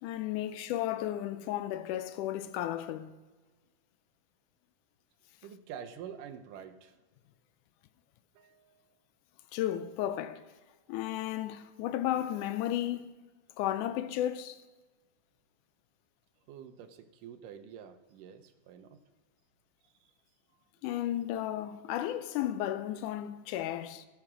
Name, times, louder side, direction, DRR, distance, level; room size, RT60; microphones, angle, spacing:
voice 1, 0.0-3.1 9.5-10.4 10.9-13.1 13.6-14.6 20.8-24.1, left 12 dB, 80° left, 2.0 m, -33 dB
voice 2, 5.4-7.0 8.4-8.8 12.1-12.3 16.5-19.0 20.0-20.1, right 8 dB, 85° right, 2.4 m, -47 dB
16.5 x 5.8 x 6.2 m
omnidirectional pair, 3.7 m